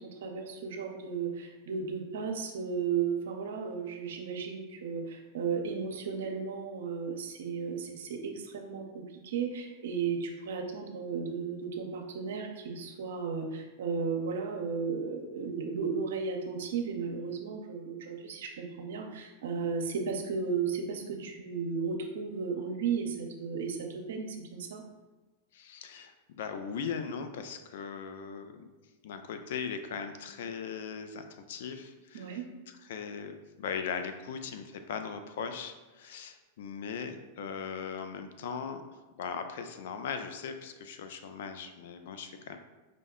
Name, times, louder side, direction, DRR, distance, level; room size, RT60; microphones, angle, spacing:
voice 1, 0.2-24.8 32.1-32.4, right 5 dB, 75° right, 3 dB, 0.5 m, -34 dB
voice 2, 25.5-28.7 29.0-38.8 39.2-42.6, left 6 dB, 70° left, 7 dB, 0.4 m, -39 dB
5.0 x 2.2 x 3.6 m, 1.2 s
hypercardioid pair, 110°, 0 cm